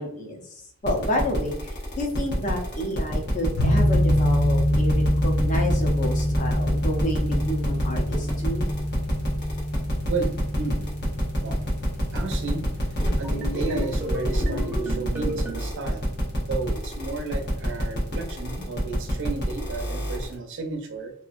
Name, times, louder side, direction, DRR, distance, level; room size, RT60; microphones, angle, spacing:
voice 1, 0.0-8.7, left 1 dB, 35° left, 1 dB, 0.6 m, -30 dB
sound 1, 0.8-20.3, equal, 50° left, 1.0 m, -29 dB
sound 2, 3.6-14.4, equal, 80° left, 0.5 m, -26 dB
voice 2, 10.6-10.9 11.4-11.6 12.1-16.0 16.4-21.1, right 3 dB, 55° right, 4 dB, 0.5 m, -33 dB
sound 3, 13.2-15.6, right 1 dB, 10° right, 0.6 m, -33 dB
2.8 x 2.5 x 2.4 m, 0.68 s
head